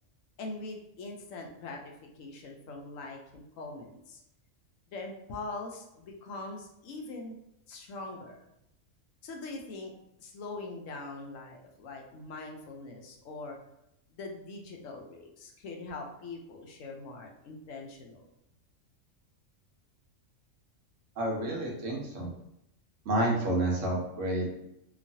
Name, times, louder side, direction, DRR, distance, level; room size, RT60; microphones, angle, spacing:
voice 1, 0.4-4.2 4.9-7.4 7.7-8.4 9.2-9.9 10.2-13.6 14.1-18.3, left 3 dB, 75° left, 1 dB, 0.9 m, -42 dB
voice 2, 21.2-22.3 23.1-24.5, right 1 dB, 70° right, -2 dB, 1.1 m, -29 dB
3.0 x 2.3 x 2.6 m, 0.82 s
omnidirectional pair, 1.4 m